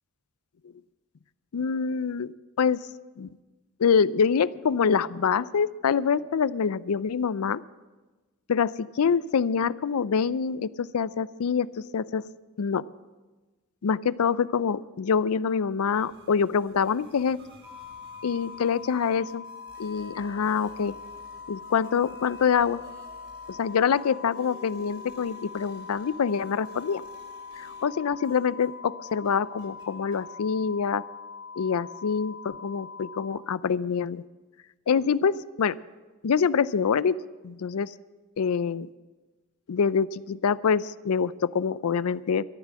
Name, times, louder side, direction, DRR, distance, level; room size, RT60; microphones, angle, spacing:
voice 1, 1.5-2.3 2.6-2.8 3.2-3.3 3.8-7.6 8.5-12.2 12.6-12.9 13.8-17.4 18.2-19.4 19.8-21.0 21.5-22.8 23.5-27.0 27.6-31.0 31.6-34.2 34.9-35.8 36.2-37.2 37.4-37.9 38.4-38.9 39.7-42.4, left 6 dB, 80° left, 18 dB, 0.4 m, -25 dB
sound 1, 15.9-28.8 29.1-30.3, equal, 60° right, 2.8 m, -54 dB
sound 2, 17.6-33.3, left 5 dB, 5° right, 2.1 m, -43 dB
13.0 x 11.0 x 7.4 m, 1.2 s
head